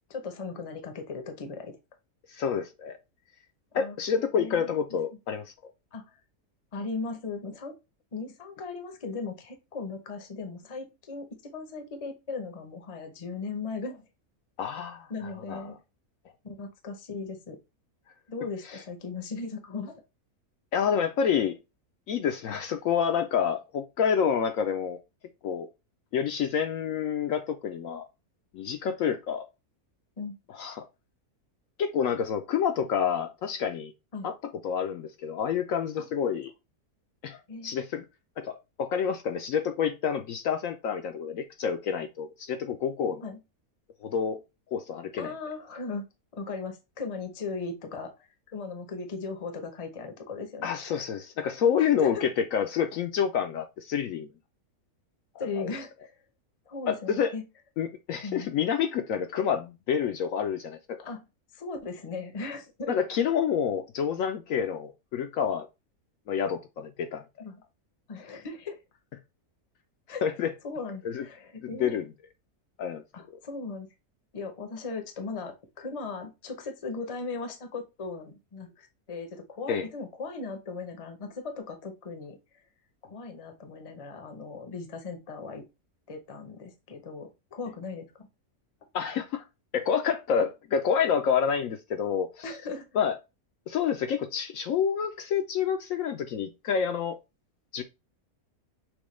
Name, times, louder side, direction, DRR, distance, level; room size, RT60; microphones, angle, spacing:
voice 1, 0.1-1.8 3.7-4.0 4.3-4.7 5.9-6.1 6.7-7.7 8.1-14.1 15.1-15.8 16.4-17.6 18.3-20.0 30.2-30.3 34.1-34.3 36.0-36.1 37.5-37.7 43.2-43.4 45.2-46.0 46.3-50.7 51.8-52.2 55.4-56.1 56.7-57.4 58.2-58.5 61.0-61.2 61.5-63.0 67.4-67.6 68.1-68.8 70.1-70.2 70.6-71.9 73.1-73.9 74.3-82.4 83.0-85.6 86.1-88.3 92.4-92.9, left 4 dB, 30° left, 0.6 m, -38 dB
voice 2, 2.3-3.0 3.7-5.5 14.6-15.1 15.5-15.8 18.7-18.8 20.7-21.5 22.1-25.0 25.4-25.7 26.1-28.1 28.5-29.4 30.6-30.8 31.8-33.9 34.2-34.3 34.6-36.5 37.2-38.0 38.4-43.2 44.0-44.4 44.7-45.3 50.6-54.3 55.4-55.7 56.9-57.3 57.8-61.1 62.9-65.7 66.3-67.2 70.2-70.5 71.0-71.2 71.6-72.1 72.8-73.0 79.7-79.9 88.9-89.4 89.7-92.4 92.9-93.1 93.7-97.2 97.7-97.8, left 7 dB, 70° left, 0.9 m, -28 dB
6.1 x 2.2 x 3.1 m
omnidirectional pair, 1.6 m